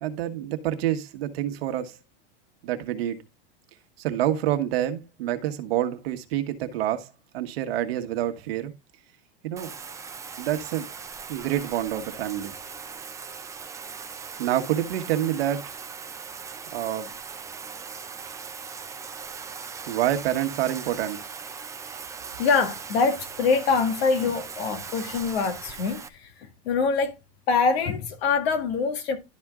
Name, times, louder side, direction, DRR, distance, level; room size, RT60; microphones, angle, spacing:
voice 1, 0.0-2.0 2.6-3.2 4.0-8.7 9.4-9.7 10.4-10.9 11.3-12.5 14.4-15.8 16.7-17.1 19.9-21.2, right 12 dB, 75° right, 1.4 m, -27 dB
Bathtub (filling or washing), 9.6-26.1, right 6 dB, 10° right, 0.6 m, -39 dB
voice 2, 22.4-27.1 27.5-29.2, left 5 dB, 80° left, 2.1 m, -24 dB
12.0 x 4.3 x 3.6 m
supercardioid pair, 145°, 30 cm